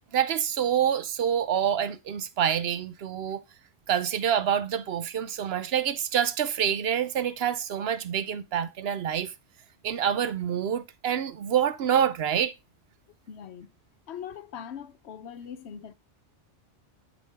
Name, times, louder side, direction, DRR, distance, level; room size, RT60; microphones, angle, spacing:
voice 1, 0.1-3.4 3.9-9.3 9.8-12.5, right 9 dB, 65° right, 0.8 m, -27 dB
voice 2, 13.3-13.7 14.1-15.9, left 8 dB, 70° left, 0.9 m, -41 dB
8.4 x 5.4 x 3.3 m
omnidirectional pair, 1.2 m